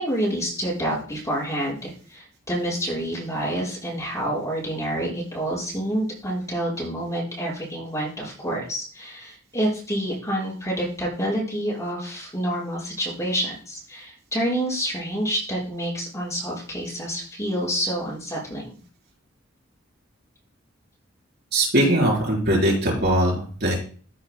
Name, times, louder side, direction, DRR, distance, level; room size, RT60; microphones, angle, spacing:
voice 1, 0.0-18.7, right 1 dB, 15° left, -7 dB, 5.3 m, -28 dB
voice 2, 21.5-23.8, right 1 dB, 55° right, -2 dB, 4.1 m, -21 dB
14.0 x 8.0 x 2.2 m, 0.43 s
head